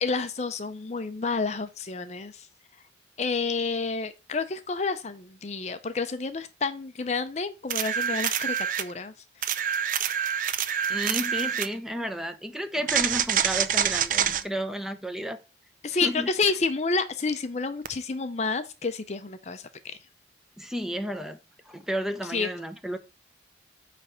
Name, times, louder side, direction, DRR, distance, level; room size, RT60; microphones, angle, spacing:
voice 1, 0.0-2.5 3.2-9.1 9.4-9.6 15.8-20.0 22.3-22.5, left 4 dB, 40° left, 0.5 m, -29 dB
sound 1, 7.7-8.9 9.4-11.7 12.9-14.4 17.9-18.0, right 8 dB, 50° right, 0.5 m, -26 dB
voice 2, 10.9-15.4 15.9-16.3 20.6-21.4 21.7-23.0, equal, ahead, 0.7 m, -32 dB
9.1 x 3.4 x 6.3 m
head